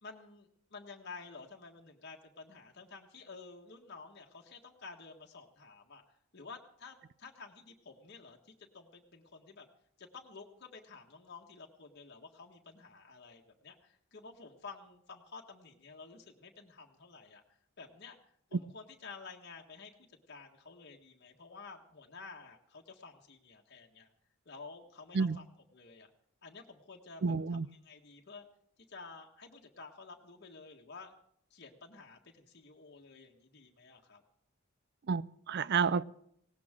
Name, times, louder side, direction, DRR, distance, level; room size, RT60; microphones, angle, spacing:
voice 1, 0.0-6.0 6.3-9.7 10.0-17.4 17.8-24.1 24.4-25.5 25.7-26.1 26.4-27.3 27.8-28.5 28.9-31.1 31.5-34.2, left 4 dB, 55° left, 1.5 m, -51 dB
voice 2, 27.2-27.7 35.1-36.0, right 5 dB, 55° right, 0.5 m, -30 dB
19.0 x 17.5 x 3.7 m
head